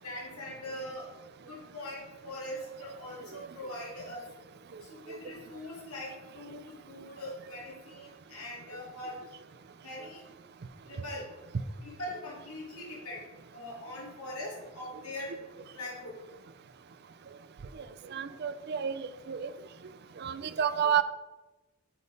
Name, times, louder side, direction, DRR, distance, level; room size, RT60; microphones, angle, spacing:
voice 1, 0.0-1.1 1.5-4.3 4.8-9.2 9.8-10.2 10.9-11.3 11.8-13.2 13.5-15.3 15.7-16.2, left 1 dB, 80° left, -4 dB, 2.2 m, -42 dB
voice 2, 18.1-19.5 20.2-21.0, right 8 dB, 45° right, 12 dB, 0.4 m, -30 dB
7.4 x 4.1 x 5.3 m, 1.1 s
head